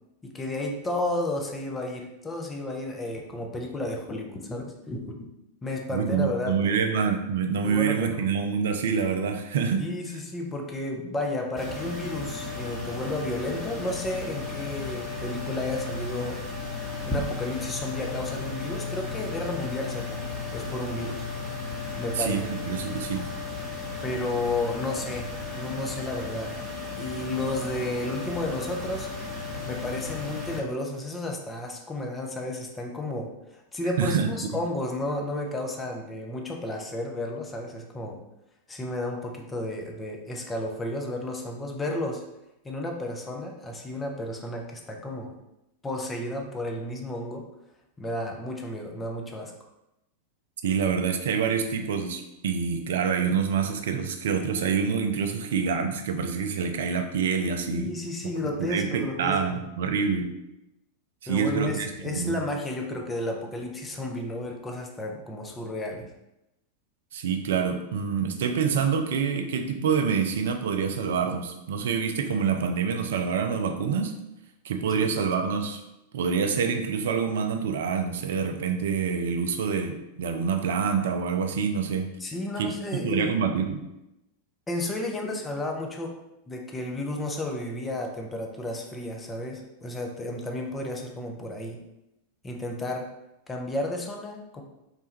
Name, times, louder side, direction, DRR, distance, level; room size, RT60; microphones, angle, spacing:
voice 1, 0.2-5.3 5.6-6.9 7.6-8.3 9.8-16.4 17.1-20.2 20.5-21.2 22.0-22.4 24.0-26.7 27.0-29.1 29.7-38.2 38.7-42.2 42.6-45.3 45.8-47.4 48.0-49.5 57.7-59.7 61.3-66.1 74.9-75.1 82.2-83.4 84.7-86.2 86.5-91.8 92.4-93.1 93.5-94.6, left 1 dB, 15° left, 2 dB, 0.5 m, -32 dB
voice 2, 5.9-9.9 22.2-23.3 34.0-34.6 50.6-57.9 58.6-60.3 61.2-62.4 67.1-74.1 74.6-75.8 76.1-82.1 82.6-83.8, right 6 dB, 60° right, 6 dB, 0.3 m, -26 dB
sound 1, 11.6-30.6, left 3 dB, 10° right, 0.8 m, -35 dB
3.2 x 2.2 x 2.8 m, 0.90 s
figure-of-eight pair, 90°, 0 cm